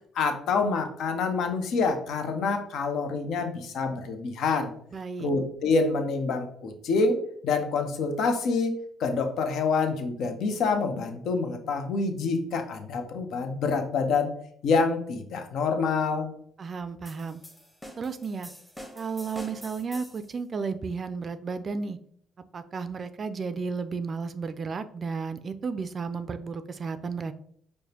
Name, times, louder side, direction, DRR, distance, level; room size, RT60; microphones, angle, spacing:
voice 1, 0.1-4.7 5.2-14.3 14.6-16.3, left 4 dB, 70° left, 6 dB, 0.5 m, -27 dB
voice 2, 4.9-5.3 16.6-17.4 18.0-18.5 19.0-22.0 22.5-27.3, right 5 dB, 45° right, 11 dB, 0.3 m, -33 dB
sound 1, 17.1-20.3, equal, 5° left, 0.8 m, -45 dB
4.7 x 2.1 x 2.7 m, 0.64 s
supercardioid pair, 65°, 0 cm